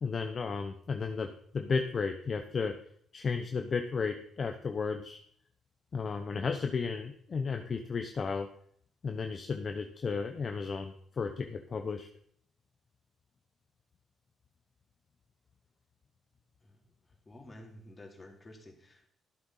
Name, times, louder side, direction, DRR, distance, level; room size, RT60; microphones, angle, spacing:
voice 1, 0.0-2.7 3.1-5.2 5.9-8.5 9.0-12.1, left 5 dB, 45° left, 5 dB, 1.1 m, -33 dB
voice 2, 17.2-19.1, left 1 dB, 25° left, 2 dB, 3.3 m, -51 dB
13.5 x 8.0 x 5.7 m, 0.64 s
cardioid pair, 90°, 0 cm